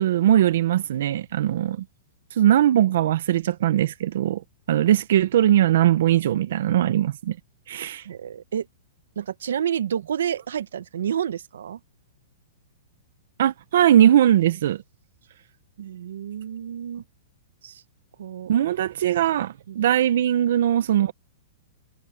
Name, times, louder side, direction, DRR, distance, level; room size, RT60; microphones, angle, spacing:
voice 1, 0.0-1.8 2.3-4.4 4.7-7.4 7.7-8.1 13.4-14.8 18.5-21.1, right 11 dB, 55° right, 0.7 m, -20 dB
voice 2, 8.0-8.7 9.2-11.8 15.8-17.0 17.6-17.8 18.2-18.5 19.7-19.8, right 9 dB, 80° right, 1.0 m, -29 dB
hypercardioid pair, 170°, 0 cm